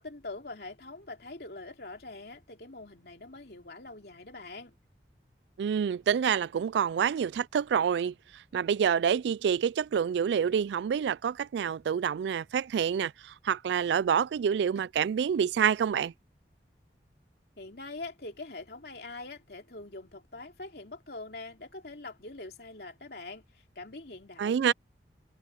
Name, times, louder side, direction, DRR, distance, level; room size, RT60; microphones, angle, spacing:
voice 1, 0.0-4.7 17.6-24.7, left 2 dB, 60° left, 3.1 m, -44 dB
voice 2, 5.6-8.1 8.5-16.1 24.4-24.7, right 7 dB, 80° right, 0.3 m, -27 dB
head